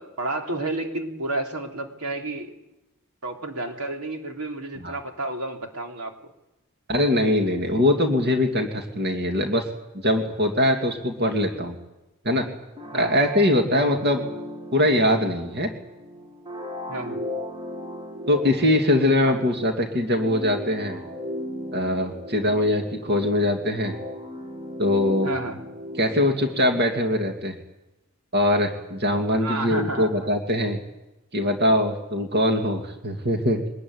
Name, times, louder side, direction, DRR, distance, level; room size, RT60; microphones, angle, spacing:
voice 1, 0.0-2.5 3.2-6.1 12.9-13.2 13.8-14.0 16.9-17.2 19.2-19.4 25.2-25.6 29.3-30.3, right 2 dB, 90° right, 2 dB, 3.5 m, -31 dB
voice 2, 6.9-9.6 10.0-11.8 12.2-12.5 12.9-14.2 14.7-15.7 18.3-21.0 21.7-24.0 24.8-25.3 26.0-27.6 28.3-30.8 31.3-33.6, left 1 dB, 45° right, 3 dB, 2.5 m, -22 dB
sound 1, 12.8-27.3, left 1 dB, 20° right, 1.7 m, -37 dB
23.5 x 20.0 x 9.7 m, 0.98 s
head